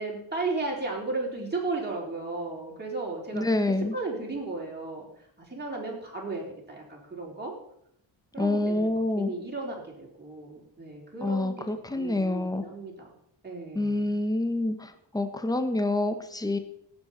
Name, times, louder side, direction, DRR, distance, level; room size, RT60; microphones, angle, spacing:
voice 1, 0.0-5.1 5.4-7.5 8.3-13.1 13.4-14.2, right 3 dB, 20° right, -3 dB, 4.0 m, -35 dB
voice 2, 3.3-4.0 8.4-9.3 11.2-12.6 13.7-16.6, left 2 dB, 10° left, 8 dB, 1.1 m, -27 dB
17.5 x 7.7 x 4.4 m, 0.73 s
wide cardioid pair, 105°, 47 cm